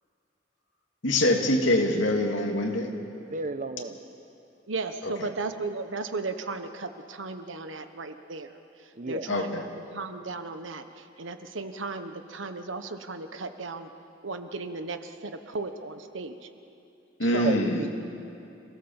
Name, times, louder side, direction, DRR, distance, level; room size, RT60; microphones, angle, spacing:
voice 1, 1.0-2.9 5.2-5.3 9.3-9.6 17.2-17.8, left 1 dB, 85° left, 2 dB, 2.5 m, -24 dB
voice 2, 3.2-4.0 9.0-9.3 17.4-17.9, right 3 dB, 45° right, 10 dB, 1.0 m, -32 dB
voice 3, 4.7-8.5 9.1-9.5 9.9-13.9 14.2-16.4 17.3-17.6, right 3 dB, 90° right, 8 dB, 1.3 m, -35 dB
27.5 x 16.5 x 7.2 m, 2.7 s
head